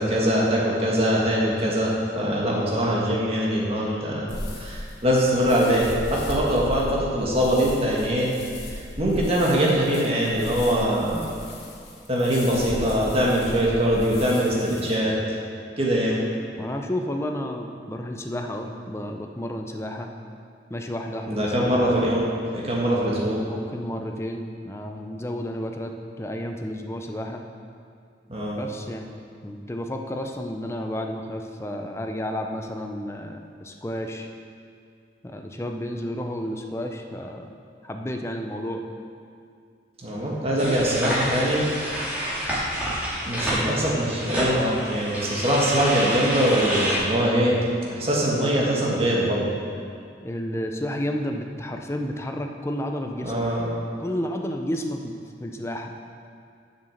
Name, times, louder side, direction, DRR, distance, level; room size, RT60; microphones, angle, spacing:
voice 1, 0.0-4.3 4.5-8.3 8.7-11.3 12.1-15.1 15.8-16.2 21.3-23.4 28.3-28.6 40.0-41.6 43.3-47.5 47.9-49.5 53.2-53.7, equal, 35° right, -4 dB, 1.6 m, -23 dB
sound 1, 4.3-14.9, left 1 dB, 65° left, 1.8 m, -36 dB
voice 2, 16.6-20.1 20.7-21.8 23.4-25.9 26.2-27.4 28.6-29.1 29.4-34.3 35.2-37.5 37.8-38.8 40.6-40.8 50.2-53.5 54.0-55.1 55.4-55.9, equal, 15° left, 4 dB, 0.5 m, -31 dB
sound 2, 40.6-47.0, equal, 10° right, 2.0 m, -28 dB
7.1 x 6.4 x 6.5 m, 2.3 s
head